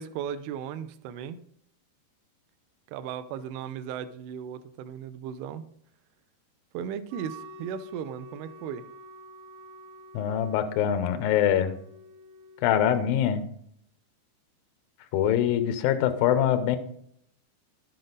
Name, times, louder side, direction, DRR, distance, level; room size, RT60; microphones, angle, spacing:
voice 1, 0.0-1.4 2.9-5.7 6.7-8.8, right 8 dB, 90° right, 10 dB, 2.2 m, -36 dB
Wind instrument woodwind instrument, 7.1-12.9, equal, 70° right, 3.4 m, -48 dB
voice 2, 10.1-11.8 12.6-13.4 15.1-16.8, left 10 dB, 90° left, 9 dB, 2.0 m, -24 dB
11.0 x 7.7 x 3.9 m, 0.69 s
omnidirectional pair, 5.2 m